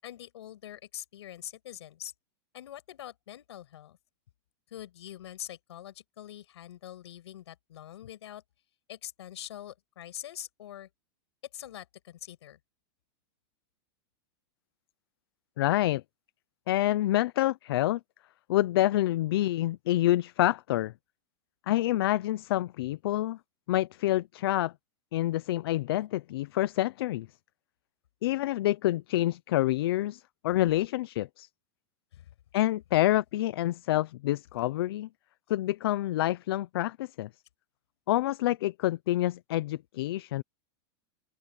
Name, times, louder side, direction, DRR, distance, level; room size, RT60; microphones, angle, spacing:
voice 1, 0.0-2.1 2.5-4.0 4.7-8.4 8.9-10.9 11.5-12.6 32.1-32.3, left 12 dB, 85° left, 6.3 m, -44 dB
voice 2, 15.6-16.0 16.7-18.0 18.5-20.9 21.7-23.4 23.7-24.7 25.1-27.3 28.2-31.5 32.5-35.1 35.5-37.3 38.1-40.4, left 15 dB, 65° left, 0.6 m, -27 dB
open air
supercardioid pair, 170°, 14 cm